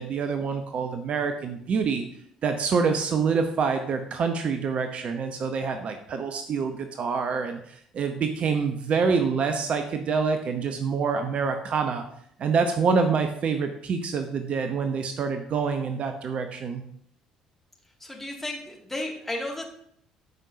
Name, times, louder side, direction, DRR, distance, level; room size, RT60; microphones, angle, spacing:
voice 1, 0.0-2.1 2.4-12.0 12.4-16.8, right 5 dB, 45° right, 7 dB, 0.8 m, -26 dB
voice 2, 18.0-19.6, left 1 dB, 10° left, 0 dB, 2.2 m, -33 dB
13.5 x 5.4 x 2.7 m, 0.66 s
figure-of-eight pair, 50°, 3 cm